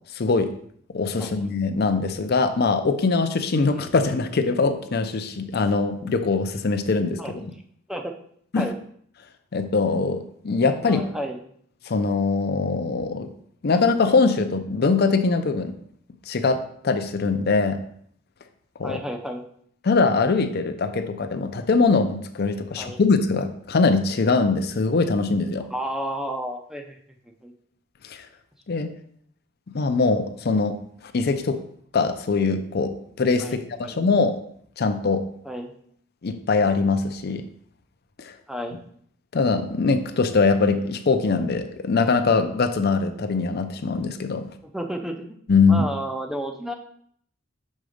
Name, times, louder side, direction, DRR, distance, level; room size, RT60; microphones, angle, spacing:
voice 1, 0.1-0.5 0.9-7.2 8.5-8.7 9.5-11.0 11.8-13.3 13.6-15.7 16.3-17.8 18.8-19.0 19.8-25.7 28.0-28.3 28.7-28.9 29.7-30.8 31.0-31.6 31.9-34.4 34.8-35.2 36.2-37.4 38.2-38.3 39.3-44.5 45.5-45.8, left 4 dB, 50° left, 8 dB, 0.5 m, -22 dB
voice 2, 10.8-11.4 13.7-13.9 18.8-19.4 22.8-23.0 25.7-27.0 27.4-27.5 28.7-28.9 33.4-34.0 35.4-35.7 38.5-38.8 44.6-45.4 45.7-46.7, equal, ahead, 4 dB, 0.5 m, -32 dB
6.4 x 3.9 x 5.0 m, 0.64 s
head